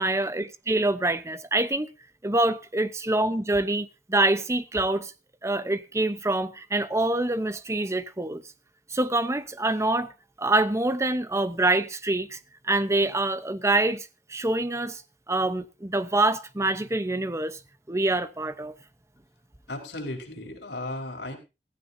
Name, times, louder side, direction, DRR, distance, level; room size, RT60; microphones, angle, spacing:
voice 1, 0.0-1.9 2.2-5.1 5.4-8.4 8.9-10.1 10.4-15.0 15.3-17.6 17.9-18.7, right 2 dB, 15° right, 0.9 m, -25 dB
voice 2, 19.7-21.3, left 1 dB, 70° left, 4.5 m, -35 dB
16.0 x 15.0 x 2.7 m
head